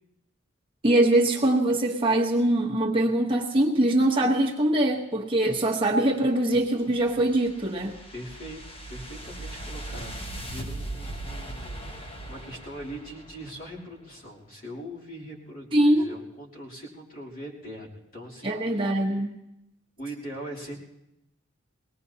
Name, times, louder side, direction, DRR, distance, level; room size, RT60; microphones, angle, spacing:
voice 1, 0.8-7.9 15.7-16.1 18.4-19.3, right 1 dB, 25° right, -2 dB, 1.1 m, -23 dB
sound 1, 6.6-13.8, right 1 dB, 30° left, 1.0 m, -39 dB
voice 2, 8.1-19.2 20.0-20.8, right 1 dB, 45° left, -5 dB, 3.1 m, -41 dB
22.0 x 18.5 x 2.8 m, 0.89 s
head